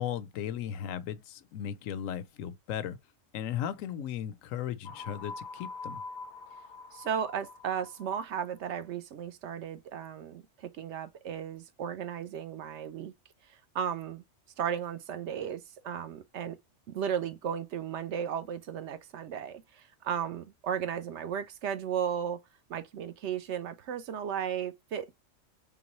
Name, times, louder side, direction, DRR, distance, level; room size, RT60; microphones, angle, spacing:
voice 1, 0.0-3.0 3.3-6.0, left 10 dB, 85° left, 1.0 m, -36 dB
sound 1, 4.8-8.5, left 4 dB, 55° left, 0.6 m, -44 dB
voice 2, 6.9-13.1 13.5-14.2 14.6-16.6 16.9-22.4 22.7-25.1, right 8 dB, 70° right, 0.9 m, -35 dB
3.8 x 3.6 x 2.9 m
omnidirectional pair, 1.3 m